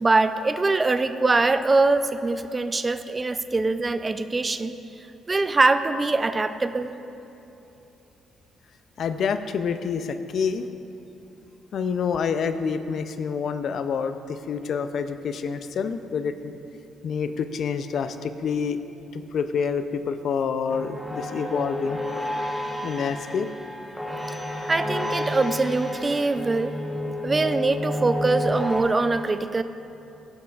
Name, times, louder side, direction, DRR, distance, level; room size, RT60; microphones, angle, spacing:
voice 1, 0.0-4.8 5.3-6.9 24.7-26.8 27.2-29.6, right 3 dB, 25° right, 11 dB, 0.3 m, -23 dB
voice 2, 9.0-10.7 11.7-16.6 17.0-18.8 19.1-22.0 22.8-23.5, left 6 dB, 65° left, 10 dB, 0.4 m, -27 dB
sound 1, 20.7-28.8, left 1 dB, 5° left, 0.9 m, -30 dB
13.5 x 7.9 x 2.3 m, 2.9 s
cardioid pair, 90°, 0 cm